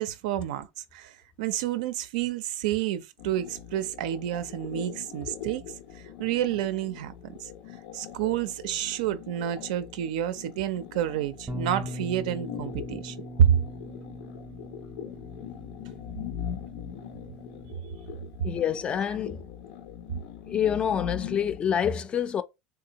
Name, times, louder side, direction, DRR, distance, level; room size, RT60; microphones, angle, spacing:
voice 1, 0.0-5.6 6.2-7.5 7.9-13.6, right 10 dB, 85° right, 0.4 m, -29 dB
sound 1, 3.2-21.6, left 9 dB, 85° left, 0.6 m, -41 dB
Bass guitar, 11.5-17.7, equal, 20° right, 0.6 m, -41 dB
voice 2, 18.4-19.4 20.5-22.4, left 8 dB, 25° left, 0.3 m, -27 dB
3.6 x 2.6 x 2.8 m
supercardioid pair, 145°, 4 cm